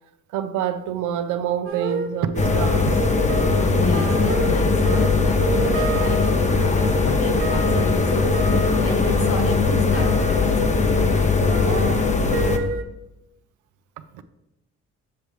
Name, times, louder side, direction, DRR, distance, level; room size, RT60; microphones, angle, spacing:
voice 1, 0.3-3.1 14.1-14.2, right 9 dB, 85° right, 9 dB, 0.6 m, -26 dB
sound 1, 1.7-11.1 11.5-12.8, right 4 dB, 45° right, 0.9 m, -30 dB
sound 2, 2.4-12.6, left 4 dB, 25° left, 0.6 m, -20 dB
voice 2, 3.4-11.5, left 2 dB, 50° left, 4 dB, 1.4 m, -33 dB
6.8 x 6.4 x 3.1 m, 0.90 s
cardioid pair, 90°, 30 cm